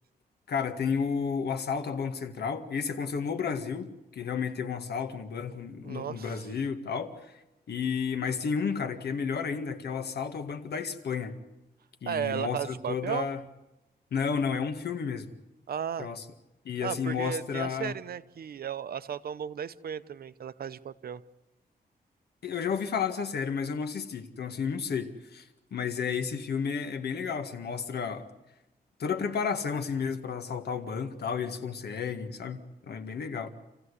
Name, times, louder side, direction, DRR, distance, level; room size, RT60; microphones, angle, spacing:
voice 1, 0.5-7.4 7.7-11.4 12.0-13.4 14.1-15.3 16.0-16.2 16.7-18.0 22.4-28.3 29.0-33.5, left 6 dB, 70° left, 1.9 m, -32 dB
voice 2, 5.8-6.5 12.0-13.3 15.7-16.1 16.8-21.2, right 8 dB, 65° right, 0.8 m, -35 dB
27.5 x 15.5 x 8.3 m
wide cardioid pair, 115°, 17 cm